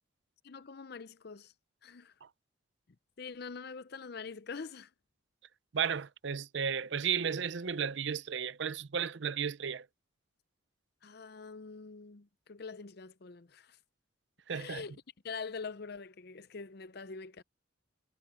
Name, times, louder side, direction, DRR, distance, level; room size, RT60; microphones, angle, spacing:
voice 1, 0.4-1.5 1.8-2.1 3.2-4.9 11.0-13.8 14.5-15.0 15.2-17.4, left 5 dB, 50° left, 0.6 m, -44 dB
voice 2, 5.7-9.8 14.5-14.8, right 7 dB, 65° right, 0.6 m, -34 dB
head